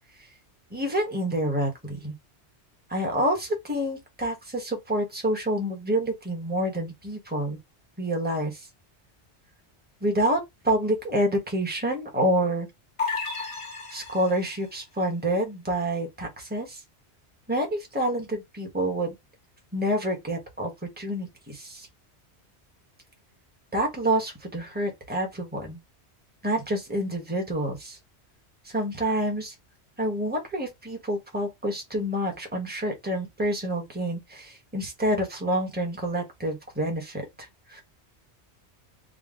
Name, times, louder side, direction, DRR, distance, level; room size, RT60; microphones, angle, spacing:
voice 1, 0.7-2.1 2.9-7.6 8.0-8.7 10.0-12.7 13.9-16.8 17.5-19.1 19.7-21.9 23.7-25.8 26.4-28.0 28.6-29.5 30.0-37.8, right 1 dB, 10° right, 1.2 m, -28 dB
sound 1, 13.0-14.6, left 4 dB, 35° left, 0.7 m, -32 dB
3.7 x 2.3 x 3.7 m
omnidirectional pair, 1.1 m